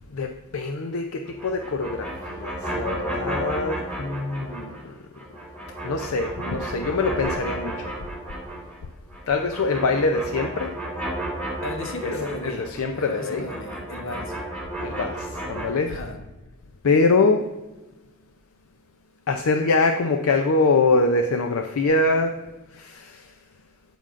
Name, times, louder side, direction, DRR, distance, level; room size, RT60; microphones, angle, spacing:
voice 1, 0.1-4.7 5.8-7.9 9.3-10.7 12.0-12.1 12.4-13.5 14.8-16.0 16.8-17.4 19.3-22.4 22.7-23.2, left 3 dB, 75° left, 5 dB, 0.5 m, -23 dB
sound 1, 1.3-4.9 5.1-8.8 9.1-15.7, right 1 dB, 5° left, 2.7 m, -33 dB
voice 2, 11.6-14.4 15.9-16.2, left 2 dB, 60° left, 4 dB, 1.1 m, -35 dB
14.5 x 5.3 x 2.5 m, 1.1 s
head